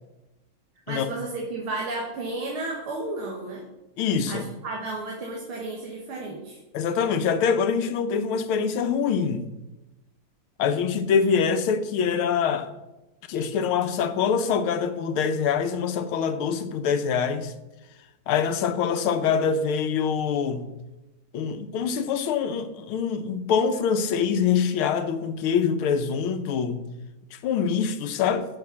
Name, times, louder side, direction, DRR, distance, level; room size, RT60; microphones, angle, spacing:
voice 1, 0.9-3.7 4.3-6.6, right 2 dB, 85° right, 2.4 m, -33 dB
voice 2, 4.0-4.5 6.7-9.5 10.6-12.7 13.3-17.5 18.3-20.7 21.3-26.8 27.3-28.5, left 6 dB, 85° left, 1.7 m, -24 dB
9.1 x 6.3 x 6.9 m
omnidirectional pair, 2.3 m